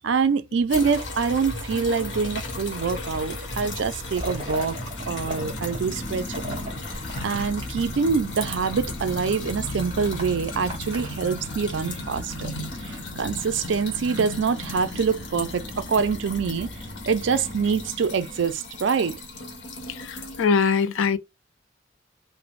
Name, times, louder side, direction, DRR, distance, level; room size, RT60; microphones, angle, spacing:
voice 1, 0.0-4.8 5.1-6.6 7.2-12.5 12.8-16.7 17.1-19.2, right 5 dB, 70° right, 0.4 m, -25 dB
sound 1, 0.7-20.5, left 2 dB, 70° left, 1.0 m, -36 dB
sound 2, 2.1-17.9, left 1 dB, 35° left, 0.6 m, -39 dB
sound 3, 2.8-3.4 3.8-5.4 5.7-7.8 8.3-8.6 9.0-9.1 9.6-12.4 13.2-13.8, right 1 dB, 25° right, 0.8 m, -38 dB
voice 2, 19.9-21.2, left 6 dB, 90° left, 0.4 m, -22 dB
3.2 x 2.1 x 2.4 m
head